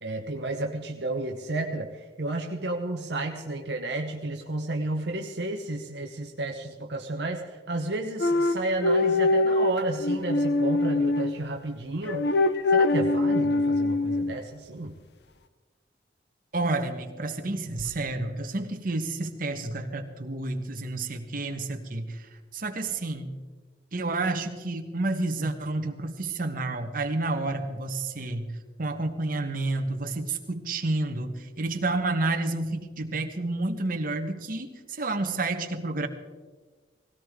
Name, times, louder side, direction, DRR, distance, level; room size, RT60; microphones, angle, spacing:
voice 1, 0.0-12.3 12.7-14.9, right 2 dB, 70° right, 3 dB, 1.0 m, -32 dB
sound 1, 8.2-11.3 12.1-14.3, left 2 dB, 70° left, 0.8 m, -23 dB
voice 2, 16.5-22.2 22.5-23.4 23.9-28.5 28.8-36.1, right 2 dB, 55° right, 5 dB, 1.3 m, -30 dB
18.5 x 17.0 x 3.7 m, 1.4 s
head